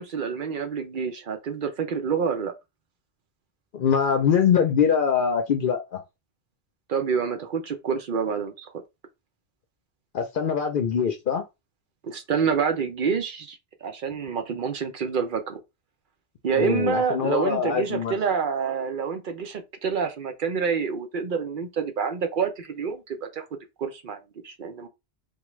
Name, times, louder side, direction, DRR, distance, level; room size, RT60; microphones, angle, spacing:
voice 1, 0.0-2.5 6.9-8.7 12.0-15.6 16.4-23.4 23.8-24.9, right 6 dB, 55° right, 0.7 m, -27 dB
voice 2, 3.7-6.0 10.1-11.4 16.6-18.2, left 7 dB, 60° left, 0.7 m, -23 dB
3.4 x 2.3 x 3.1 m
omnidirectional pair, 1.1 m